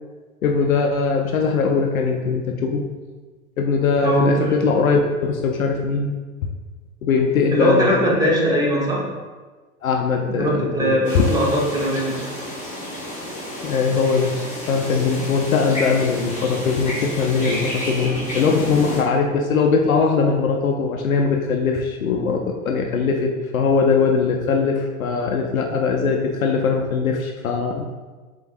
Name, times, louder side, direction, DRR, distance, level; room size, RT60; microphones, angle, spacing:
voice 1, 0.4-2.9 3.6-6.5 7.0-8.5 9.8-11.2 13.6-14.3 14.7-27.9, left 5 dB, 75° left, 2 dB, 0.5 m, -21 dB
voice 2, 4.0-4.5 7.5-9.1 10.3-12.2, equal, 10° right, -4 dB, 1.1 m, -20 dB
sound 1, 11.0-19.0, left 1 dB, 15° left, 1.4 m, -31 dB
4.7 x 3.8 x 2.5 m, 1.3 s
figure-of-eight pair, 95°, 41 cm